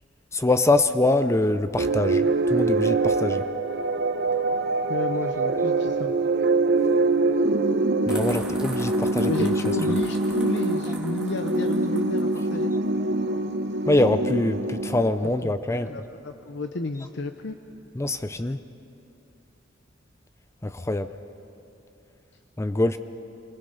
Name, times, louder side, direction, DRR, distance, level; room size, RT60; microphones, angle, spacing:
voice 1, 0.3-3.4 8.1-9.3 13.9-15.9 18.0-18.6 20.6-21.1 22.6-23.0, left 2 dB, 15° left, 10 dB, 0.5 m, -24 dB
sound 1, 1.8-15.5, right 3 dB, 60° right, 0.8 m, -24 dB
voice 2, 4.9-6.1 9.2-12.7 15.2-17.6, left 2 dB, 60° left, 7 dB, 0.7 m, -32 dB
sound 2, 8.1-12.5, right 1 dB, 5° right, 2.0 m, -40 dB
26.0 x 21.0 x 5.5 m, 2.8 s
head